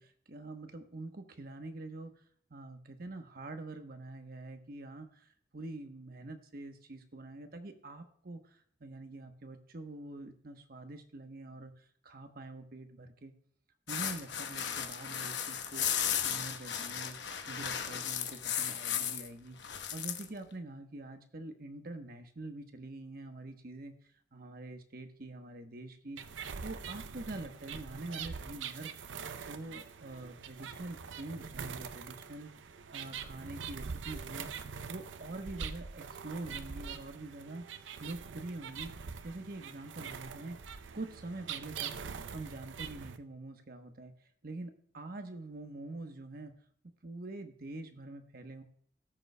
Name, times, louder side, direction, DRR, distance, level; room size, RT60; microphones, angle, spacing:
voice 1, 0.0-2.2 2.5-13.3 13.9-17.2 17.5-23.9 24.3-28.9 29.4-34.5 34.9-40.6 40.9-44.1 44.4-46.5 47.0-48.6, right 2 dB, 50° right, 6 dB, 1.0 m, -45 dB
sound 1, 13.9-19.3 19.6-20.2, left 9 dB, 70° left, 1.0 m, -35 dB
sound 2, 26.2-43.2, right 6 dB, 90° right, 0.6 m, -44 dB
18.5 x 6.8 x 2.2 m, 0.64 s
head